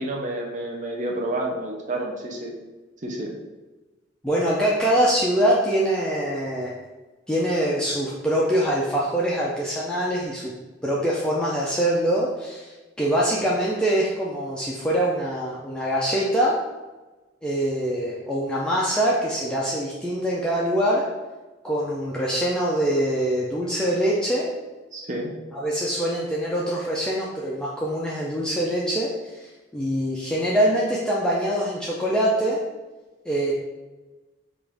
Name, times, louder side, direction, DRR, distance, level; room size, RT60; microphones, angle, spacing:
voice 1, 0.0-2.5 3.0-3.3 24.9-25.3, right 1 dB, 40° right, -1 dB, 0.6 m, -29 dB
voice 2, 4.2-6.7 7.3-10.5 10.8-16.6 17.4-21.0 21.6-24.5 25.5-32.6 33.2-33.5, right 1 dB, 5° left, -6 dB, 0.5 m, -24 dB
5.8 x 2.5 x 3.4 m, 1.2 s
head